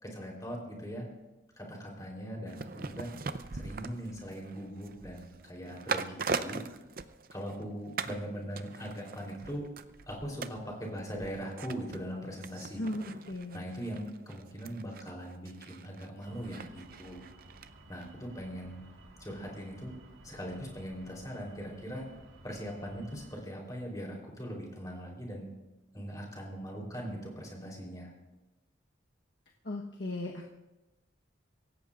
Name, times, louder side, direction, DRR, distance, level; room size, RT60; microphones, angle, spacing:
voice 1, 0.0-1.1 1.6-3.1 3.5-6.6 7.3-9.7 10.1-12.9 13.5-17.2 17.9-18.8 19.2-19.9 20.2-22.1 22.4-25.5 25.9-28.1, equal, 20° left, -1 dB, 3.6 m, -40 dB
sound 1, 2.5-7.6 8.0-8.2 8.6-17.7 18.0-18.1, right 4 dB, 45° right, 0.6 m, -41 dB
voice 2, 12.8-13.6 29.6-30.5, left 1 dB, 60° left, -1 dB, 1.2 m, -37 dB
sound 2, 16.2-23.4, right 1 dB, 85° right, 1.8 m, -55 dB
24.0 x 17.0 x 2.5 m, 1.0 s
head